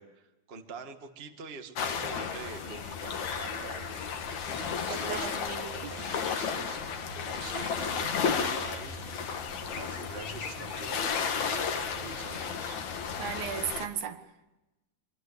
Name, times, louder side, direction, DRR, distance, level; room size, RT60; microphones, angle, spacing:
voice 1, 0.0-4.0 4.5-6.8 7.3-9.2 9.7-12.8, right 5 dB, 30° right, 1.1 m, -45 dB
sound 1, 1.8-13.9, left 6 dB, 55° left, 2.8 m, -33 dB
Ocean / Boat Water vehicle, 3.1-11.0, left 4 dB, 40° left, 2.3 m, -51 dB
voice 2, 4.9-5.9 13.2-14.2, right 8 dB, 75° right, 3.3 m, -36 dB
sound 2, 5.9-12.3, right 3 dB, 55° right, 2.0 m, -50 dB
26.0 x 22.5 x 8.2 m
omnidirectional pair, 4.3 m